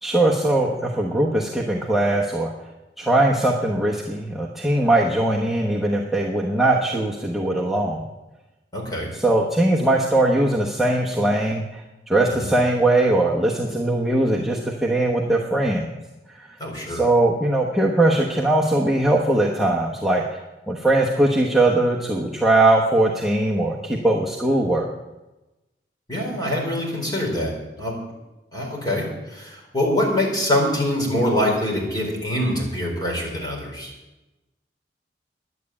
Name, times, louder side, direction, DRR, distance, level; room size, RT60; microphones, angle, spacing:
voice 1, 0.0-2.5 3.0-8.0 9.1-15.9 16.4-16.6 16.9-20.4 20.7-24.9, right 1 dB, ahead, -4 dB, 1.0 m, -20 dB
voice 2, 8.7-9.1 12.2-12.5 16.6-17.0 26.1-28.0 28.5-33.9, left 1 dB, 25° left, -1 dB, 4.4 m, -24 dB
11.0 x 9.3 x 8.6 m, 1.1 s
head